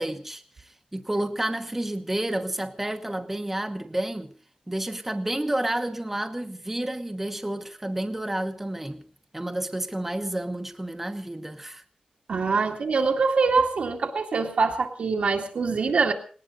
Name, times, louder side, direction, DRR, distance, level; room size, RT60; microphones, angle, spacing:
voice 1, 0.0-4.3 4.7-9.0 9.3-11.8, right 1 dB, 10° right, 1.0 m, -30 dB
voice 2, 12.3-16.1, right 4 dB, 70° right, 2.1 m, -24 dB
19.5 x 18.5 x 4.0 m
wide cardioid pair, 150°, 2 cm